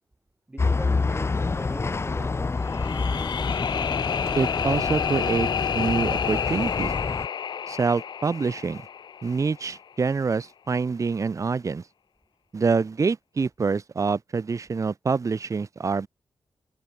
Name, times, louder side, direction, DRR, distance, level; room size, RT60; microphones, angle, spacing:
voice 1, 0.5-2.5, right 1 dB, 15° right, 1.2 m, -41 dB
sound 1, 0.6-7.3, left 4 dB, 35° left, 0.7 m, -28 dB
sound 2, 2.6-9.7, left 7 dB, 65° left, 0.6 m, -30 dB
voice 2, 4.4-5.5 5.7-6.9 7.7-8.8 9.2-11.8 12.5-16.1, right 4 dB, 40° right, 0.8 m, -26 dB
cardioid pair, 65°, 8 cm